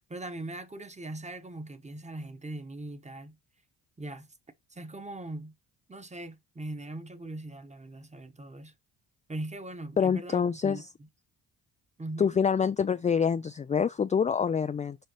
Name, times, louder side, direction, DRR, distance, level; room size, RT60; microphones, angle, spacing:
voice 1, 0.1-3.4 4.0-4.3 4.7-5.5 5.9-8.7 9.3-10.8 12.0-12.4, right 2 dB, 15° right, 1.1 m, -40 dB
voice 2, 10.0-10.8 12.2-15.0, left 6 dB, 20° left, 0.3 m, -26 dB
6.6 x 5.1 x 3.0 m
supercardioid pair, 70°, 42 cm